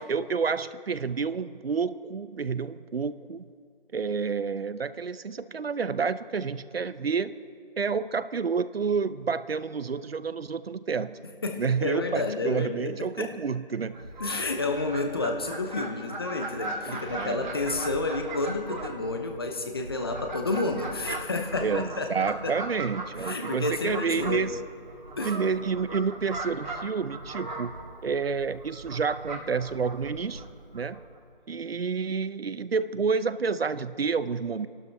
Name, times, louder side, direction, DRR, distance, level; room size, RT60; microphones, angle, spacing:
voice 1, 0.0-3.4 3.9-7.3 7.8-11.2 11.6-14.1 16.9-17.4 21.6-24.6 25.2-30.4 30.7-31.0 31.5-34.7, right 5 dB, 80° right, 15 dB, 0.7 m, -29 dB
voice 2, 11.4-13.3 14.2-22.6 23.2-24.5 25.2-25.4, left 3 dB, 25° left, 5 dB, 0.9 m, -30 dB
Fowl, 13.9-31.2, right 2 dB, 50° right, 1.9 m, -39 dB
29.0 x 12.0 x 3.4 m, 2.3 s
figure-of-eight pair, 165°, 29 cm